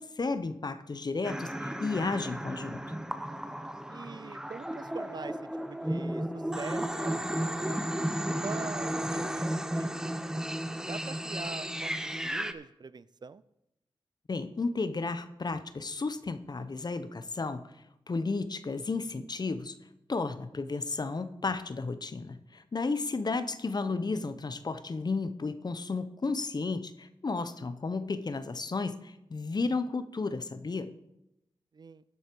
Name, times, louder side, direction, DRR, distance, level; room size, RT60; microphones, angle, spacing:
voice 1, 0.0-2.8 14.3-17.7 18.1-19.7 20.1-30.9, left 3 dB, 45° left, 12 dB, 0.8 m, -33 dB
sound 1, 1.2-12.5, right 1 dB, 5° right, 0.7 m, -34 dB
voice 2, 3.9-5.4 5.7-7.9 8.4-9.4 9.7-10.2 10.9-13.4 23.9-24.3 31.7-32.0, right 5 dB, 45° right, 17 dB, 0.4 m, -44 dB
12.0 x 8.0 x 4.6 m, 0.85 s
cardioid pair, 65°, 10 cm